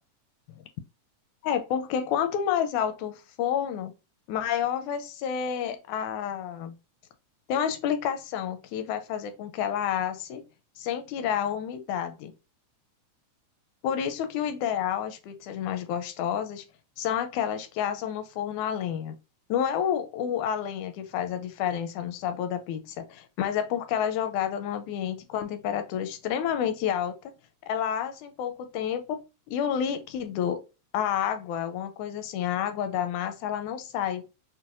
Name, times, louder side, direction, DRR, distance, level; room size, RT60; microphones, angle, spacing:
voice 1, 1.4-3.9 4.3-6.8 7.5-10.4 10.8-12.3 13.8-16.6 17.0-19.2 19.5-27.3 27.7-29.2 29.5-30.6 30.9-34.2, left 9 dB, 85° left, 2.0 m, -29 dB
5.8 x 2.2 x 2.5 m
omnidirectional pair, 3.5 m